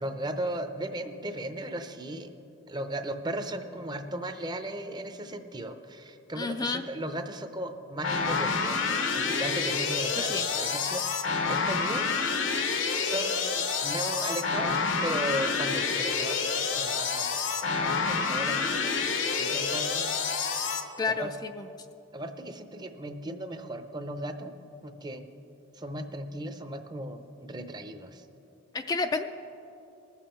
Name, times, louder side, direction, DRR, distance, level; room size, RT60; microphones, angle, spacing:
voice 1, 0.0-2.3 2.7-12.5 13.0-20.2 21.1-21.3 22.1-25.2 25.7-28.3, right 1 dB, 20° right, 8 dB, 0.6 m, -37 dB
voice 2, 6.4-6.8 10.2-10.4 21.0-21.3 21.6-21.7 28.7-29.2, left 4 dB, 20° left, 6 dB, 0.3 m, -30 dB
sound 1, 8.0-20.8, left 5 dB, 75° left, 0.9 m, -28 dB
20.0 x 7.2 x 4.4 m, 2.8 s
head